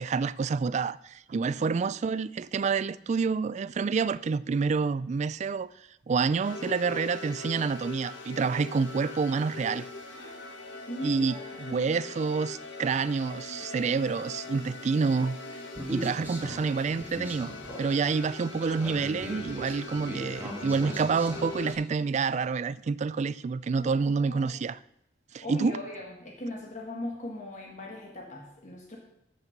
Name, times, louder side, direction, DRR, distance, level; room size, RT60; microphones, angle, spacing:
voice 1, 0.0-5.7 6.1-9.9 11.0-15.4 15.9-17.5 17.8-24.8 25.3-25.8, right 5 dB, 40° right, 0.3 m, -28 dB
voice 2, 1.4-1.8 10.1-10.4 10.9-11.9 17.7-18.3 23.8-24.5 25.4-29.0, left 1 dB, 40° left, 1.8 m, -39 dB
sound 1, 6.4-21.7, left 2 dB, 80° left, 1.5 m, -42 dB
Human voice, 15.8-21.8, equal, 10° right, 2.2 m, -40 dB
13.0 x 6.7 x 5.9 m
head